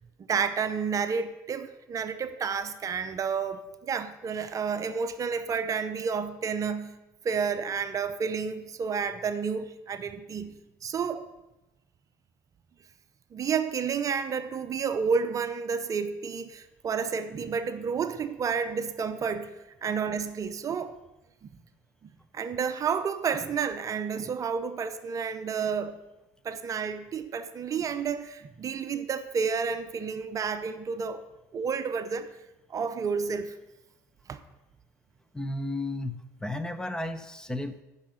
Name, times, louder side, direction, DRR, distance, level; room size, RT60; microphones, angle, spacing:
voice 1, 0.3-7.0 7.2-11.2 13.3-19.5 19.8-21.0 21.4-21.6 22.0-26.0 26.4-31.2 31.5-32.3 32.7-33.5 34.3-34.4, right 6 dB, 40° right, 11 dB, 0.7 m, -30 dB
voice 2, 35.3-37.8, left 1 dB, 10° left, 10 dB, 0.7 m, -33 dB
10.5 x 5.7 x 6.5 m, 0.99 s
supercardioid pair, 85°, 9 cm